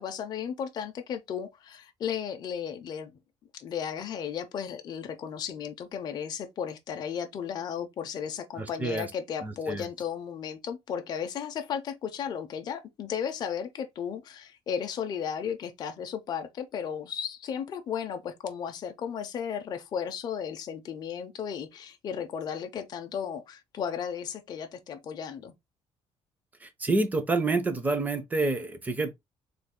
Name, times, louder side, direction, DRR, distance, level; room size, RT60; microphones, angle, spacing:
voice 1, 0.0-3.1 3.5-25.5, left 8 dB, 40° left, 0.5 m, -35 dB
voice 2, 8.6-9.1 9.4-9.9 26.6-29.1, right 3 dB, 15° right, 0.5 m, -28 dB
3.2 x 2.3 x 3.6 m
cardioid pair, 175°, 11 cm